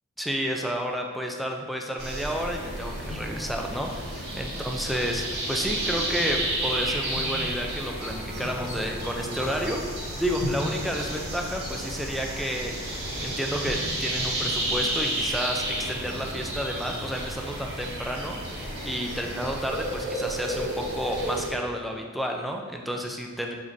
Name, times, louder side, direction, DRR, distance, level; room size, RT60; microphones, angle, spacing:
voice 1, 0.2-12.7 13.2-23.5, equal, ahead, 1 dB, 0.5 m, -31 dB
sound 1, 2.0-21.5, right 1 dB, 55° right, 1.8 m, -31 dB
7.3 x 5.0 x 2.7 m, 1.5 s
head